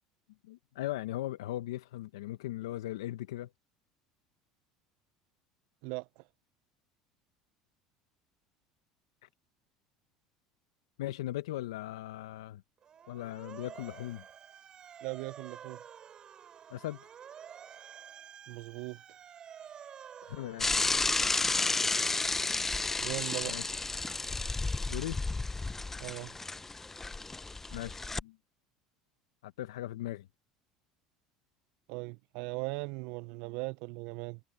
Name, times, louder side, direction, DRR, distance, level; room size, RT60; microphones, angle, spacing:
voice 1, 0.4-3.5 9.2-9.3 11.0-12.6 13.1-14.3 16.7-17.1 20.2-20.7 23.4-23.7 24.9-25.2 27.7-28.4 29.4-30.3, left 14 dB, 85° left, 0.9 m, -38 dB
voice 2, 5.8-6.2 15.0-15.8 18.5-19.0 23.0-23.6 26.0-26.3 31.9-34.4, right 25 dB, 70° right, 0.5 m, -39 dB
Motor vehicle (road) / Siren, 12.8-21.4, right 8 dB, 40° right, 4.8 m, -50 dB
Bicycle / Mechanisms, 20.6-28.2, left 3 dB, 15° left, 0.6 m, -32 dB
supercardioid pair, 95°, 2 cm